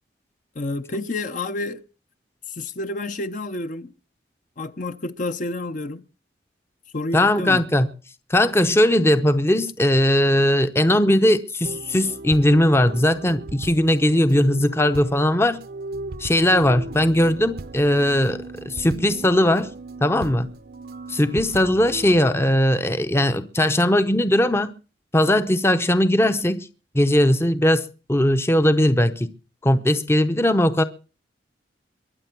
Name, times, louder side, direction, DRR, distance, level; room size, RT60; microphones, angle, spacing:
voice 1, 0.5-1.8 2.5-3.9 4.6-6.0 6.9-7.6, left 2 dB, 45° left, 0.8 m, -29 dB
voice 2, 7.1-7.9 8.3-15.6 16.2-19.7 20.0-20.5 21.1-24.7 25.1-26.7 26.9-29.3 29.6-30.8, left 1 dB, 15° left, 0.7 m, -19 dB
sound 1, 11.6-22.2, right 2 dB, 55° right, 0.7 m, -37 dB
23.0 x 7.6 x 6.0 m
head